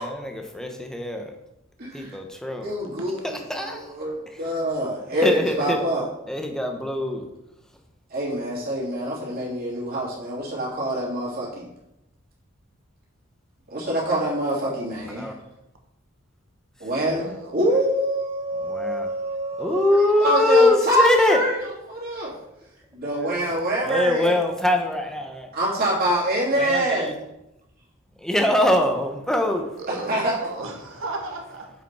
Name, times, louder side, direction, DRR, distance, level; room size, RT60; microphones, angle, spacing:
voice 1, 0.0-1.3 1.9-2.7 3.5-3.9 5.2-5.8 6.3-7.3 15.2-15.3 17.0-17.2 18.6-19.1 19.6-21.4 23.3-23.4 23.8-25.5 26.6-27.1 28.2-29.7, left 1 dB, 5° left, 3 dB, 0.9 m, -22 dB
voice 2, 1.8-2.2 2.5-3.2 3.5-6.1 8.1-11.7 13.7-15.3 16.8-22.3 22.9-24.4 25.5-27.1 29.9-30.3, right 1 dB, 50° right, -6 dB, 3.0 m, -25 dB
voice 3, 17.1-17.5 29.8-31.7, right 2 dB, 85° right, 3 dB, 1.3 m, -35 dB
7.3 x 5.0 x 4.8 m, 0.88 s
head